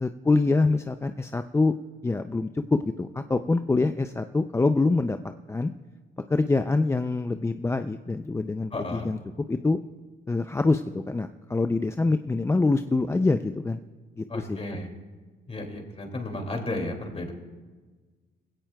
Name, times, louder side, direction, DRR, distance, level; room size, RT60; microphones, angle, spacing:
voice 1, 0.0-1.7 2.0-5.2 5.5-5.7 6.3-9.2 9.5-9.8 10.3-13.8 14.2-14.6, left 3 dB, 15° left, 9 dB, 0.4 m, -25 dB
voice 2, 8.7-9.1 14.3-14.9 15.5-17.3, left 2 dB, 30° left, 3 dB, 2.4 m, -33 dB
18.5 x 16.5 x 2.3 m, 1.4 s
cardioid pair, 90°, 20 cm